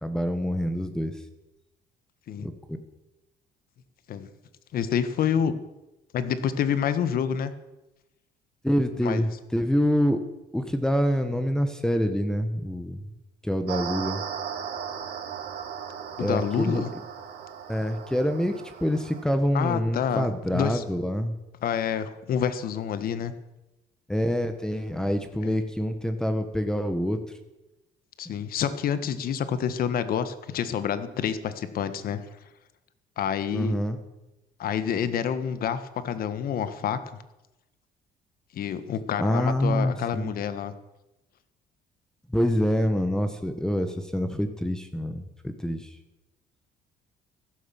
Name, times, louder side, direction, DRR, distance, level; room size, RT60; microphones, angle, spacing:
voice 1, 0.0-1.2 2.4-2.5 8.6-10.2 10.5-13.0 13.4-14.2 16.2-16.8 17.7-18.5 18.8-21.3 24.1-27.2 33.5-34.0 39.2-40.3 42.3-45.9, equal, 5° left, 8 dB, 1.4 m, -26 dB
voice 2, 4.7-5.5 6.1-7.5 9.0-9.2 16.2-16.9 19.5-20.8 21.6-23.3 25.4-25.6 28.2-32.2 33.2-33.8 34.6-37.0 38.5-40.7, left 8 dB, 60° left, 12 dB, 1.5 m, -28 dB
sound 1, 13.7-19.2, right 7 dB, 70° right, 3.0 m, -36 dB
15.0 x 12.5 x 7.1 m, 0.98 s
cardioid pair, 110°, 17 cm